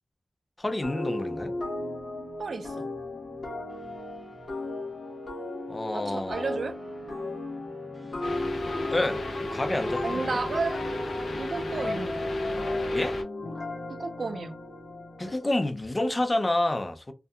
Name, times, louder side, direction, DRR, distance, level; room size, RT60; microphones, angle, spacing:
voice 1, 0.6-1.5 5.7-6.6 8.9-10.4 12.9-13.2 15.2-17.1, left 1 dB, 25° left, 0.5 m, -29 dB
sound 1, 0.8-15.4, left 2 dB, 55° left, 0.9 m, -36 dB
sound 2, 1.3-13.0, equal, 15° right, 0.8 m, -50 dB
voice 2, 2.4-2.9 5.9-6.8 10.0-10.9 11.4-12.3 13.9-14.5, right 4 dB, 70° right, 0.4 m, -32 dB
sound 3, 8.2-13.2, left 1 dB, 80° left, 0.7 m, -33 dB
2.6 x 2.4 x 2.2 m
wide cardioid pair, 80°, 0 cm